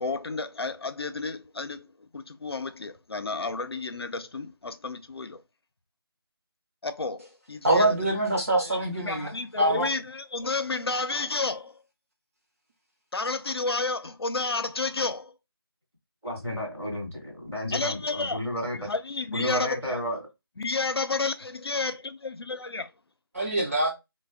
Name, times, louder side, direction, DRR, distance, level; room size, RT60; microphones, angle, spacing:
voice 1, 0.0-5.4 6.8-8.0 8.6-11.8 13.1-15.3 17.7-18.4 18.7-20.0 20.6-22.9, left 3 dB, 75° left, 0.6 m, -31 dB
voice 2, 7.6-9.3 9.6-9.9 23.3-23.9, right 1 dB, 35° right, 0.9 m, -24 dB
voice 3, 16.2-18.9 19.3-20.2, left 1 dB, 5° right, 0.7 m, -32 dB
3.3 x 2.2 x 3.3 m
figure-of-eight pair, 170°, 13 cm